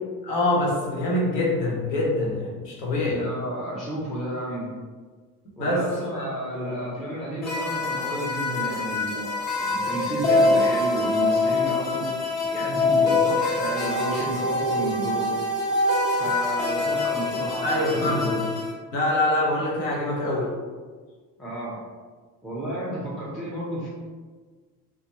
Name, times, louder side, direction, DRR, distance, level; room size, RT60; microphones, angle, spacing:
voice 1, 0.2-3.2 5.6-5.9 6.1-6.8 17.6-18.4 18.9-20.5, left 1 dB, 75° left, -4 dB, 0.8 m, -25 dB
voice 2, 3.1-4.7 5.6-12.1 12.5-15.3 16.2-18.4 21.4-21.8 22.4-23.9, right 1 dB, ahead, -7 dB, 0.3 m, -32 dB
sound 1, 7.4-18.7, left 2 dB, 45° left, 0.8 m, -24 dB
2.2 x 2.2 x 2.8 m, 1.5 s
figure-of-eight pair, 60°, 50 cm